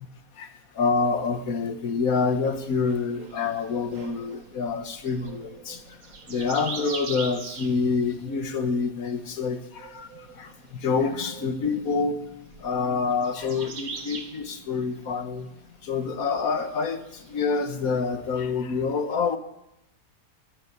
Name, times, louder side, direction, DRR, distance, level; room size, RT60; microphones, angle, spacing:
voice 1, 0.7-5.8 6.3-10.1 10.3-12.2 12.6-15.5 15.8-19.4, left 4 dB, 55° left, 1.5 m, -27 dB
sound 1, 2.1-18.3, right 5 dB, 85° right, 2.4 m, -43 dB
15.0 x 11.5 x 6.8 m
omnidirectional pair, 1.9 m